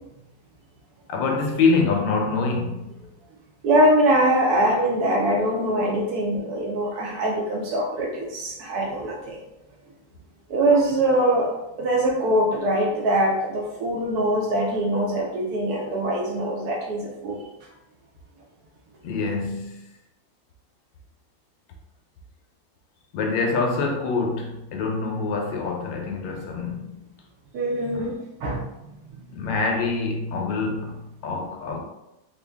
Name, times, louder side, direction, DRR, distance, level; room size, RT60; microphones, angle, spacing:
voice 1, 1.1-2.9 19.0-19.8 23.1-26.9 28.0-28.1 29.3-31.8, left 4 dB, 85° left, 1 dB, 1.4 m, -25 dB
voice 2, 3.6-9.4 10.5-11.5 11.8-17.5 27.5-28.1 28.4-28.6, right 1 dB, 70° right, -1 dB, 1.0 m, -22 dB
3.8 x 2.2 x 3.4 m, 0.92 s
omnidirectional pair, 2.0 m